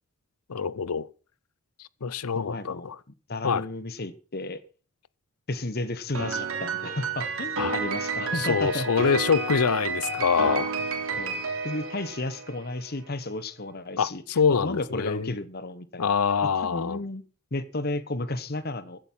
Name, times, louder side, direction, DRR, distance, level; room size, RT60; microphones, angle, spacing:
voice 1, 0.5-1.1 2.0-3.0 3.4-3.6 7.6-7.7 8.4-10.8 14.0-15.3 16.0-17.0, left 6 dB, 90° left, 0.7 m, -25 dB
voice 2, 2.3-2.9 3.3-4.6 5.5-9.1 11.2-16.1 16.6-17.2 17.5-19.0, left 2 dB, 45° left, 1.1 m, -33 dB
Piano, 6.1-12.7, right 4 dB, 65° right, 3.2 m, -31 dB
15.5 x 9.1 x 5.6 m
head